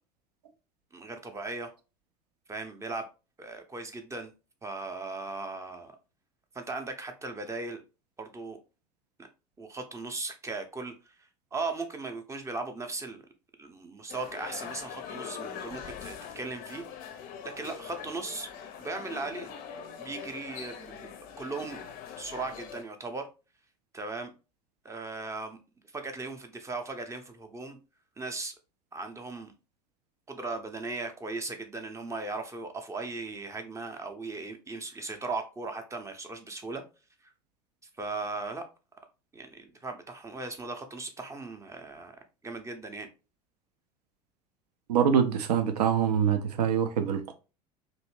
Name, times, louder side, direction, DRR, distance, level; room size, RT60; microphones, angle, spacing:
voice 1, 0.9-1.7 2.5-3.1 3.4-4.3 4.6-6.0 6.5-7.8 8.2-8.6 9.6-11.1 11.5-13.2 13.6-16.8 17.4-18.5 18.8-19.5 20.0-21.8 22.2-23.3 23.9-24.3 24.8-25.6 25.9-27.8 28.2-28.5 28.9-29.5 30.3-36.8 38.0-38.7 39.3-42.2 42.4-43.1, right 3 dB, 15° right, 0.5 m, -37 dB
sound 1, 14.1-22.8, left 7 dB, 40° left, 0.5 m, -42 dB
voice 2, 44.9-47.3, right 8 dB, 70° right, 0.5 m, -25 dB
2.7 x 2.6 x 3.0 m
figure-of-eight pair, 75°, 21 cm